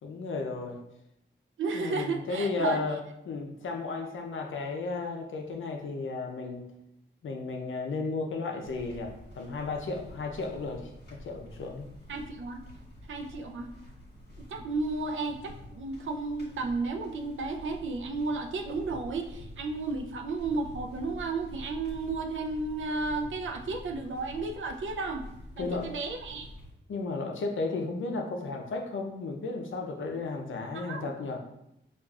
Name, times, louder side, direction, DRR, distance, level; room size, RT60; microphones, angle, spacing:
voice 1, 0.0-0.8 1.7-3.0 3.3-6.7 7.2-11.9 25.6-25.9 26.9-31.4, left 3 dB, 75° left, 3 dB, 0.6 m, -34 dB
voice 2, 1.6-2.8 12.1-12.6 13.1-13.7 14.4-25.3 25.6-26.5 30.7-31.1, right 3 dB, 75° right, 3 dB, 0.5 m, -33 dB
sound 1, 8.6-26.7, left 1 dB, 55° left, 1.3 m, -47 dB
4.7 x 2.4 x 2.3 m, 0.81 s
cardioid pair, 70°, 20 cm